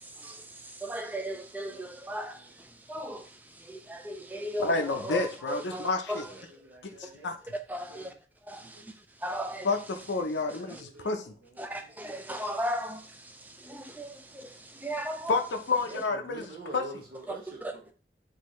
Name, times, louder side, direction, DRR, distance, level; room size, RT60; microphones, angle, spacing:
voice 1, 0.8-2.5 2.9-3.3 3.6-6.2 7.7-8.1 8.5-8.9 9.2-9.7 10.7-10.8 11.6-15.4, equal, 10° right, 0.4 m, -36 dB
voice 2, 1.3-2.5 4.5-4.6 5.7-7.3 7.9-8.2 8.6-8.8 10.2-12.0 15.9-17.9, right 1 dB, 55° right, 0.7 m, -48 dB
voice 3, 4.6-6.3 7.0-7.3 9.6-11.3 15.3-16.4 16.7-16.8, left 3 dB, 80° left, 0.6 m, -29 dB
6.2 x 2.8 x 3.1 m
head